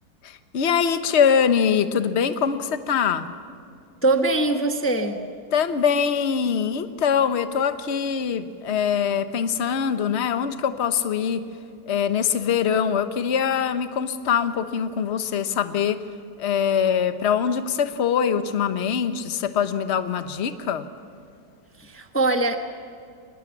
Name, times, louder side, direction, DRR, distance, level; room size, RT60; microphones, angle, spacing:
voice 1, 0.2-3.3 5.5-11.4 11.9-16.0 16.4-20.9, left 7 dB, 45° left, 10 dB, 1.1 m, -23 dB
voice 2, 4.0-5.2 21.8-22.6, right 2 dB, 10° left, 5 dB, 0.9 m, -22 dB
25.0 x 20.0 x 7.3 m, 2.3 s
omnidirectional pair, 1.9 m